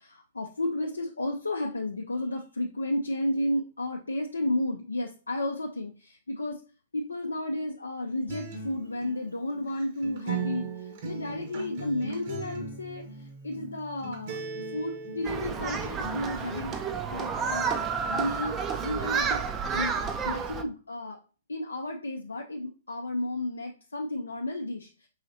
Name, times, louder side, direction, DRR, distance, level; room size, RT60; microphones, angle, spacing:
voice 1, 0.0-6.6 6.9-14.4 14.7-16.8 17.1-19.4 19.7-20.0 20.2-21.2 21.5-25.1, left 1 dB, 80° left, 2 dB, 0.4 m, -32 dB
Acoustic guitar, 8.3-16.3, right 5 dB, 50° right, 0.9 m, -39 dB
Human group actions, 15.2-20.6, right 6 dB, 20° right, 0.4 m, -30 dB
4.7 x 3.0 x 2.6 m, 0.36 s
figure-of-eight pair, 115°, 0 cm